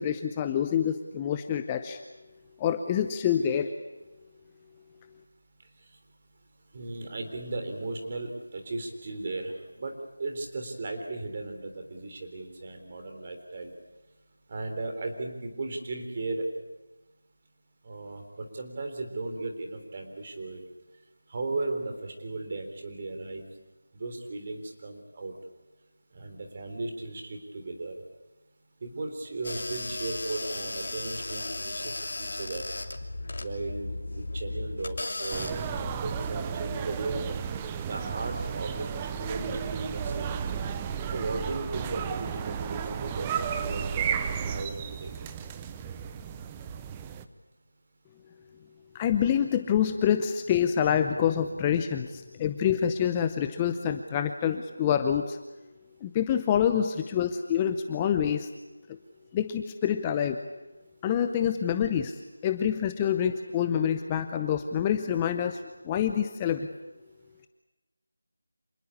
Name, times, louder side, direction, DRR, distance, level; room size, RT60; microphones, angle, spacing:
voice 1, 0.0-2.0 2.6-3.7 48.9-55.4 56.0-58.5 59.3-60.4 61.0-66.7, left 9 dB, 15° left, 8 dB, 0.7 m, -27 dB
voice 2, 6.7-9.9 10.2-13.7 14.5-16.5 17.8-20.6 21.3-23.4 23.9-25.4 26.1-28.0 28.8-32.6 33.4-35.7 36.0-37.2 37.9-40.4 41.1-45.1, right 2 dB, 30° right, 4 dB, 3.7 m, -36 dB
sound 1, 29.4-36.1, left 2 dB, 55° left, 2.9 m, -36 dB
sound 2, 35.3-47.3, right 7 dB, 15° right, 0.8 m, -33 dB
26.5 x 19.5 x 8.6 m, 1.1 s
figure-of-eight pair, 170°, 0 cm